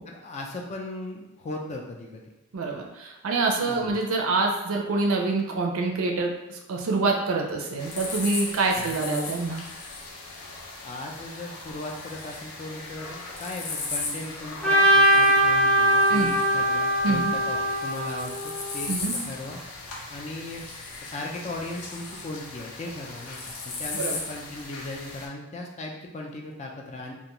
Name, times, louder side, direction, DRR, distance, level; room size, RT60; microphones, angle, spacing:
voice 1, 0.1-2.3 3.6-3.9 8.8-9.1 10.8-19.0 19.2-20.6 21.1-27.1, left 2 dB, 30° left, 0 dB, 0.4 m, -37 dB
voice 2, 2.5-9.6 16.1-16.3 17.0-17.3 18.9-19.2 23.9-24.2, right 3 dB, 65° right, 1 dB, 0.4 m, -26 dB
sound 1, 7.8-25.3, left 3 dB, 80° left, 0.5 m, -37 dB
Trumpet, 14.6-18.8, right 1 dB, 5° left, 0.7 m, -21 dB
2.5 x 2.3 x 2.9 m, 0.98 s
head